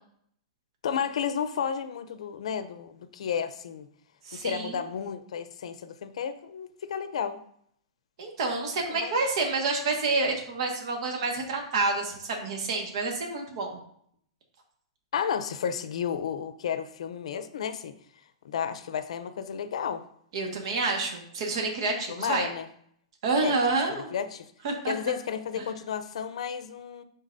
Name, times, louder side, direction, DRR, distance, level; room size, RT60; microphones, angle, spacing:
voice 1, 0.8-3.9 4.3-7.4 8.9-9.1 15.1-18.0 18.4-20.0 22.1-22.7 23.4-23.6 23.9-24.5 24.9-27.0, left 7 dB, 75° left, 0.6 m, -32 dB
voice 2, 4.2-4.8 8.2-13.8 20.3-22.5 23.2-24.1 24.6-24.9 25.6-25.7, right 3 dB, 55° right, 1.6 m, -28 dB
11.5 x 4.0 x 2.7 m
hypercardioid pair, 155°, 3 cm